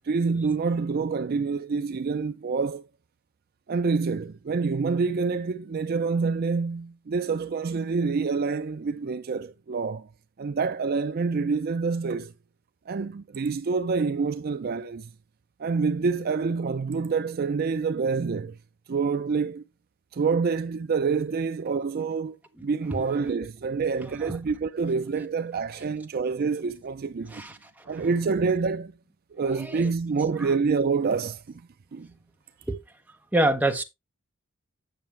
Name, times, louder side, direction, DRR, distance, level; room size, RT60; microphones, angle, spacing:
voice 1, 0.0-2.9 3.7-10.1 10.4-12.3 12.9-15.1 15.6-18.6 18.9-19.6 20.1-27.4 27.9-28.9 29.3-31.6 31.9-32.1, right 4 dB, 45° right, 0.4 m, -27 dB
voice 2, 24.0-24.4 27.3-28.1 29.5-29.9 30.4-30.5 32.7-32.8 33.3-33.8, right 1 dB, 5° right, 1.1 m, -27 dB
8.9 x 6.5 x 3.3 m
head